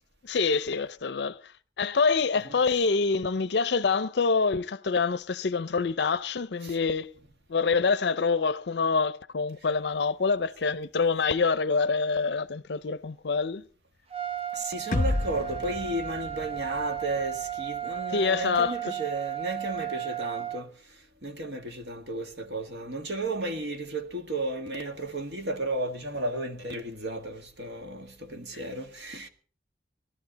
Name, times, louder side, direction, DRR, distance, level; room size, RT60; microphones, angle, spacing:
voice 1, 0.2-1.5 1.8-7.1 7.5-13.7 18.1-18.9, left 4 dB, 70° left, 0.6 m, -26 dB
Trumpet, 14.1-20.6, right 11 dB, 35° right, 0.7 m, -34 dB
voice 2, 14.5-20.7 21.2-29.3, right 2 dB, 70° right, 1.8 m, -33 dB
sound 1, 14.9-18.8, left 1 dB, 50° left, 1.0 m, -33 dB
19.5 x 12.0 x 4.1 m
head